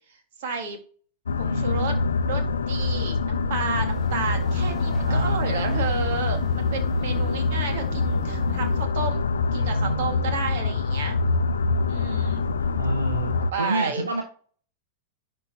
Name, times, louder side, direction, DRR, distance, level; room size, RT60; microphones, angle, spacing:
voice 1, 0.4-0.8 1.4-9.3 9.5-11.2 11.9-12.4 13.5-14.1, right 5 dB, 60° right, 5 dB, 2.0 m, -31 dB
sound 1, 1.3-13.5, left 4 dB, 75° left, 0.5 m, -25 dB
voice 2, 1.4-1.9 5.0-5.8 9.5-10.3 12.5-14.2, right 2 dB, 85° right, 3 dB, 1.1 m, -30 dB
sound 2, 3.8-8.8, right 6 dB, 20° right, 1.0 m, -37 dB
11.0 x 4.5 x 2.9 m, 0.42 s
figure-of-eight pair, 95°, 0 cm